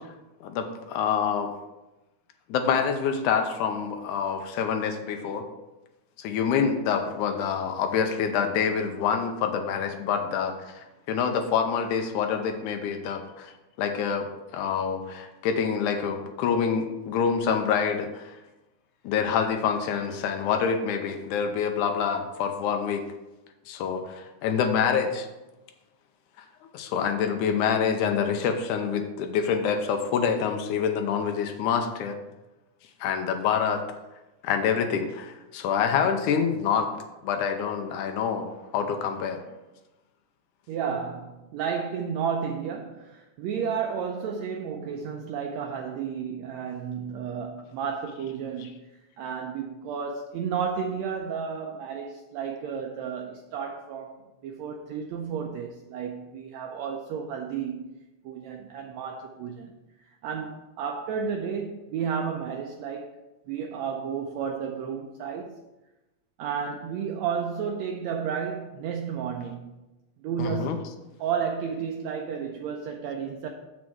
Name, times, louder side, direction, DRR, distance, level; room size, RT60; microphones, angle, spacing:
voice 1, 0.4-1.5 2.5-5.4 6.2-13.5 13.8-18.4 19.0-23.0 23.7-25.3 26.4-32.2 33.0-33.8 34.4-36.9 37.2-39.4 70.4-70.8, left 7 dB, 90° left, 2.1 m, -26 dB
voice 2, 40.7-48.9 49.2-58.0 58.2-59.7 60.1-63.1 63.5-65.6 66.4-69.7 70.2-70.8 71.2-73.5, right 7 dB, 75° right, 1.7 m, -32 dB
7.3 x 6.2 x 4.6 m
omnidirectional pair, 3.5 m